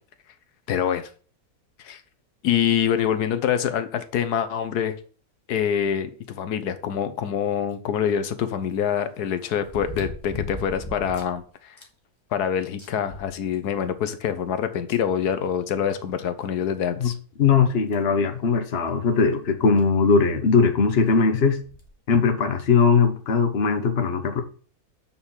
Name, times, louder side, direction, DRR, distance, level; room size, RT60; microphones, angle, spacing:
voice 1, 0.7-1.1 1.8-2.0 2.4-5.0 5.5-11.8 12.3-17.1, left 8 dB, 90° left, 1.5 m, -25 dB
sound 1, 7.7-7.8 9.6-11.4 11.8-11.9 12.3-12.4 12.8-13.9 14.9-15.0 16.4-16.5 17.1-17.2 17.9-18.1 19.5-19.6 19.8-19.9 21.6-21.9 22.6-22.7, left 2 dB, 20° left, 2.0 m, -37 dB
voice 2, 17.4-21.6 22.1-24.4, left 5 dB, 45° left, 1.3 m, -20 dB
6.5 x 5.6 x 7.3 m
omnidirectional pair, 1.6 m